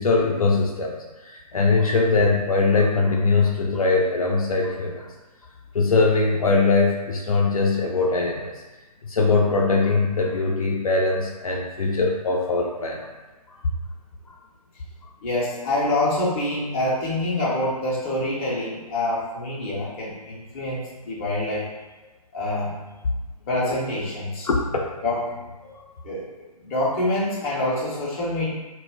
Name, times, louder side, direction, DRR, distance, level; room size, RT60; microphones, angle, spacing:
voice 1, 0.0-5.1 5.7-8.5 9.0-13.0 14.3-14.4 24.5-24.8 25.7-25.8, left 3 dB, 65° left, 0 dB, 0.4 m, -21 dB
voice 2, 15.2-21.6 22.3-22.7 23.5-24.5 25.0-25.2 26.0-26.2 26.6-28.5, left 1 dB, 20° left, -7 dB, 0.6 m, -26 dB
2.2 x 2.0 x 3.3 m, 1.2 s
figure-of-eight pair, 135°, 20 cm